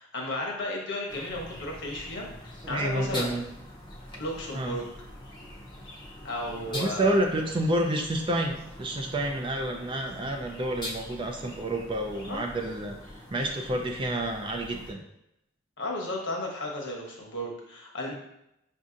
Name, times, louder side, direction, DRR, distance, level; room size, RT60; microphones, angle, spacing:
voice 1, 0.0-3.4 4.2-4.9 6.2-7.2 12.3-12.4 15.8-18.1, left 1 dB, 70° left, -1 dB, 1.1 m, -34 dB
sound 1, 1.1-14.9, left 1 dB, 25° left, 0.6 m, -43 dB
voice 2, 2.6-3.4 4.5-4.8 6.7-15.0, right 1 dB, 25° right, 2 dB, 0.4 m, -29 dB
6.1 x 2.7 x 2.5 m, 0.81 s
head